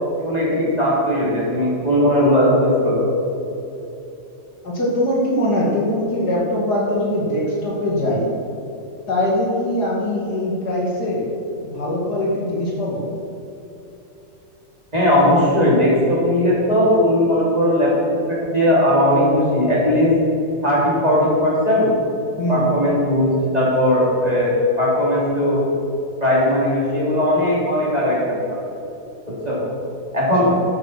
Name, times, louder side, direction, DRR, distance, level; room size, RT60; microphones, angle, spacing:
voice 1, 0.2-3.1 14.9-17.9 18.3-20.1 20.6-21.9 22.5-25.7 26.2-28.4 29.4-29.6 30.1-30.5, left 1 dB, 20° right, -7 dB, 3.4 m, -18 dB
voice 2, 4.6-8.3 9.1-11.3 11.6-13.0 22.4-22.6 30.4-30.5, left 1 dB, 60° left, -4 dB, 2.8 m, -22 dB
12.5 x 8.2 x 5.9 m, 2.9 s
omnidirectional pair, 2.0 m